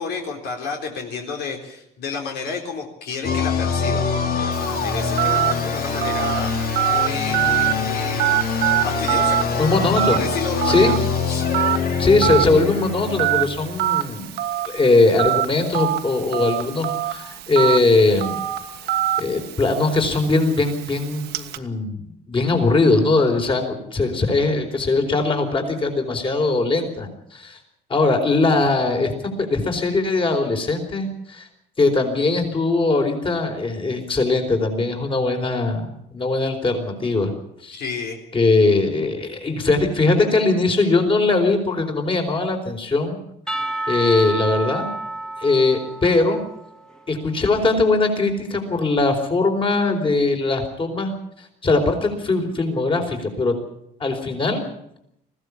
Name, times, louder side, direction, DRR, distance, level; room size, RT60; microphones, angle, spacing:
voice 1, 0.0-8.5 8.8-9.7 10.1-10.9 11.3-11.5 37.7-38.2, left 5 dB, 75° left, 2 dB, 3.9 m, -31 dB
sound 1, 3.2-13.9, left 5 dB, 60° left, 2.4 m, -24 dB
Telephone, 4.5-21.6, right 13 dB, 80° right, 1.5 m, -25 dB
voice 2, 9.6-10.2 10.6-10.9 12.0-14.3 14.7-18.4 19.2-27.6 27.9-29.1 29.4-31.5 31.8-37.3 37.6-37.8 38.3-43.2 43.9-44.9 45.4-46.4 47.1-51.1 51.4-53.5 54.0-54.6, left 3 dB, 30° left, 4 dB, 4.4 m, -20 dB
Percussion / Church bell, 43.5-47.4, right 2 dB, 5° left, 1.7 m, -30 dB
20.5 x 16.0 x 8.5 m, 0.77 s
cardioid pair, 110°, 17 cm